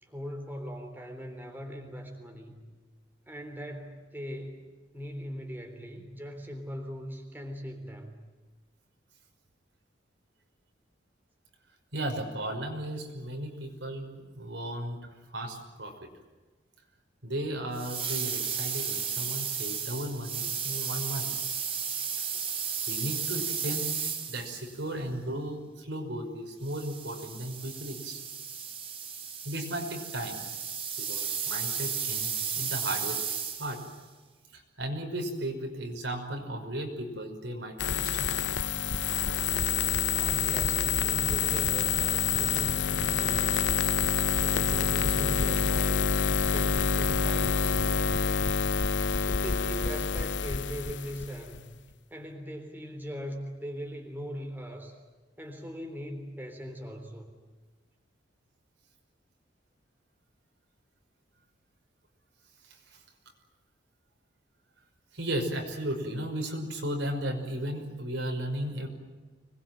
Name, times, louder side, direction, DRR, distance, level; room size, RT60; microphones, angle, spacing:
voice 1, 0.0-2.6 3.3-4.6 4.9-8.2 40.1-43.9 44.4-48.7 49.3-51.7 52.1-55.0 55.4-57.3, equal, 10° right, 3 dB, 3.7 m, -40 dB
voice 2, 11.9-15.0 15.3-16.0 17.2-21.3 22.9-24.0 24.3-28.2 29.4-30.4 31.0-33.8 34.5-38.4 38.7-38.8 44.4-44.5 62.6-63.0 65.1-68.9, right 1 dB, 70° right, 3 dB, 5.6 m, -35 dB
sound 1, 17.7-24.8 26.6-33.9, right 7 dB, 30° right, 2.8 m, -34 dB
sound 2, 37.8-51.6, left 6 dB, 70° left, 0.8 m, -27 dB
26.0 x 21.0 x 9.2 m, 1.3 s
head